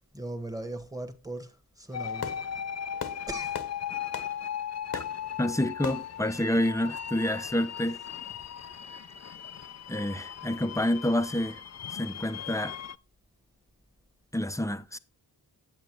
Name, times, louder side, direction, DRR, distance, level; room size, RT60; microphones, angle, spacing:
voice 1, 0.1-2.4 3.3-3.6, right 1 dB, 10° right, 1.7 m, -38 dB
Fireworks, 1.9-7.5, left 7 dB, 65° left, 1.1 m, -42 dB
sound 1, 1.9-13.0, left 8 dB, 40° left, 0.5 m, -38 dB
voice 2, 5.4-8.0 9.9-11.6 12.0-12.8 14.3-15.0, left 1 dB, 5° left, 0.8 m, -28 dB
9.0 x 8.1 x 3.1 m
cardioid pair, 45°, 42 cm